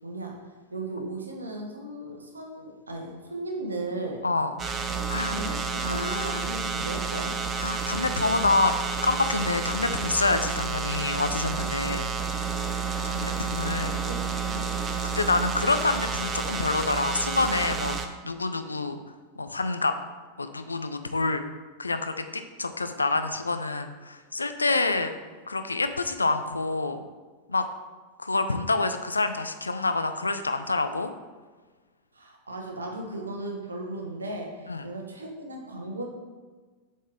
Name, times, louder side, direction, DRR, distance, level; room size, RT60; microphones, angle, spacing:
voice 1, 0.0-4.3 5.2-7.4 13.6-14.7 32.1-36.0, right 2 dB, 75° right, 1 dB, 1.0 m, -36 dB
voice 2, 4.2-4.5 5.1-5.3 5.8-6.4 7.6-8.7 9.0-12.1 12.7-14.0 15.0-18.0 18.2-19.0 19.4-20.0 20.4-21.4 21.8-25.1 25.5-27.0 27.5-27.7 28.2-31.1 34.7-34.9, left 3 dB, 80° left, 9 dB, 0.4 m, -27 dB
sound 1, 4.6-18.1, right 5 dB, 25° right, 0.5 m, -30 dB
7.4 x 4.2 x 3.6 m, 1.4 s
figure-of-eight pair, 90°, 0 cm